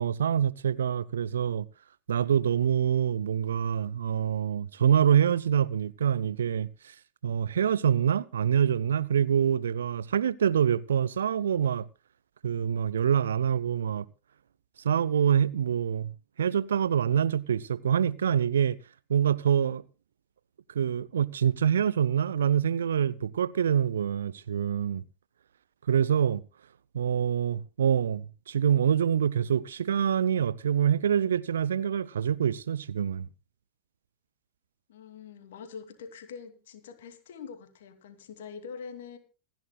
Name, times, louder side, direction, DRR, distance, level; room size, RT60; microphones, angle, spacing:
voice 1, 0.0-1.7 2.1-6.9 7.2-11.9 12.4-14.1 14.8-16.1 16.4-18.8 19.1-19.8 20.7-25.0 25.9-26.4 26.9-33.3, right 8 dB, 65° right, 0.7 m, -25 dB
voice 2, 34.9-39.2, left 6 dB, 60° left, 2.7 m, -44 dB
26.5 x 10.5 x 2.3 m
figure-of-eight pair, 90°, 0 cm